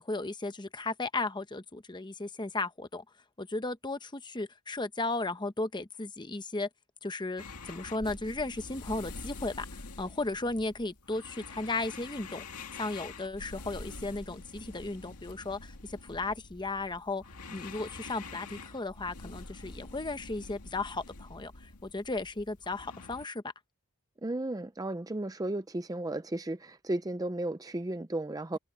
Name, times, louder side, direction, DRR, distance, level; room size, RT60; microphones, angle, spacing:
voice 1, 0.0-3.0 3.4-6.7 7.0-9.7 10.0-12.5 12.8-17.2 17.5-23.4, left 2 dB, 20° left, 0.9 m, -35 dB
sound 1, 7.4-23.3, left 3 dB, 85° left, 2.1 m, -46 dB
voice 2, 24.2-28.6, right 1 dB, 15° right, 0.5 m, -34 dB
head